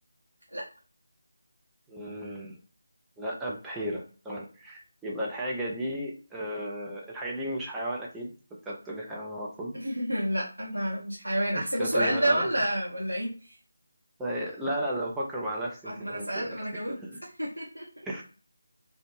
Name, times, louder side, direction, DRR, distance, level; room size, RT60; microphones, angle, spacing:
voice 1, 1.9-2.6 3.2-8.3 8.6-9.7 11.5-12.5 14.2-17.2 18.0-18.2, equal, 5° right, -4 dB, 0.5 m, -34 dB
voice 2, 9.7-13.5 15.8-17.0 17.4-17.8, right 1 dB, 85° right, -5 dB, 0.7 m, -29 dB
2.5 x 2.0 x 3.0 m, 0.38 s
figure-of-eight pair, 160°, 0 cm